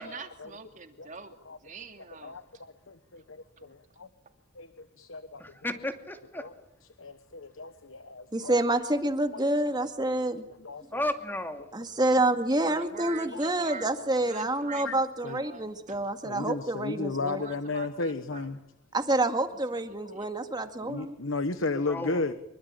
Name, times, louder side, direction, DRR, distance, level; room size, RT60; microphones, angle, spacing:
voice 1, 0.0-1.3 1.6-2.4 12.6-13.9 14.2-16.0 17.3-18.5 19.7-19.8 20.1-20.3, right 4 dB, 35° right, 6 dB, 2.8 m, -44 dB
voice 2, 2.2-3.8 4.6-4.7 5.0-5.4 6.4-6.5 7.0-8.5 10.0-10.8 12.0-12.2 13.0-13.4 14.2-14.3 14.7-15.0 15.2-15.4 16.2-18.6 20.1-20.2 20.6-22.3, left 3 dB, 65° left, 11 dB, 1.2 m, -34 dB
voice 3, 5.4-6.4 10.9-11.7 21.7-22.2, left 1 dB, 10° left, 6 dB, 2.5 m, -33 dB
voice 4, 8.3-10.4 11.7-17.4 18.9-21.2, right 1 dB, 20° right, 7 dB, 2.1 m, -28 dB
26.0 x 23.5 x 8.9 m, 0.84 s
head